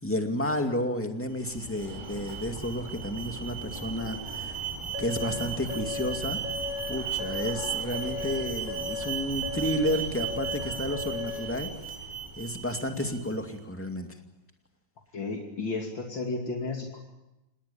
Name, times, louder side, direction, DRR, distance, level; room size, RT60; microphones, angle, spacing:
voice 1, 0.0-4.6 5.0-6.4 6.9-11.7 12.4-14.2, left 1 dB, 5° left, 4 dB, 2.2 m, -31 dB
Alarm, 1.3-13.4, right 6 dB, 15° right, 3.6 m, -36 dB
sound 1, 4.9-11.5, left 4 dB, 45° right, 5.1 m, -37 dB
voice 2, 15.1-17.0, left 3 dB, 75° left, 1 dB, 3.3 m, -33 dB
28.5 x 20.0 x 7.0 m, 0.96 s
omnidirectional pair, 2.1 m